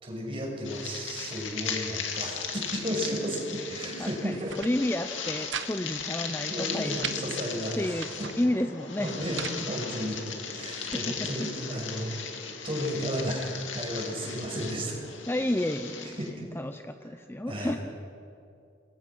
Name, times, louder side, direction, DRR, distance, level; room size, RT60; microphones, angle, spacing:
voice 1, 0.0-4.5 6.5-8.3 9.0-10.2 10.5-12.1 12.6-15.0 16.2-16.3 17.5-17.8, equal, 30° right, -1 dB, 6.4 m, -33 dB
sound 1, 0.6-16.3, left 6 dB, 80° left, 2.5 m, -37 dB
voice 2, 4.0-7.1 7.8-8.1 8.4-9.2 10.9-11.5 15.3-16.2 16.5-17.8, left 1 dB, 10° left, 8 dB, 0.7 m, -31 dB
sound 2, 4.3-4.7 5.1-5.7 6.0-6.1 6.5-7.2 7.7-8.4 9.0-9.6 10.3-11.0, right 8 dB, 70° right, 1.2 m, -39 dB
28.0 x 22.0 x 6.1 m, 2.4 s
head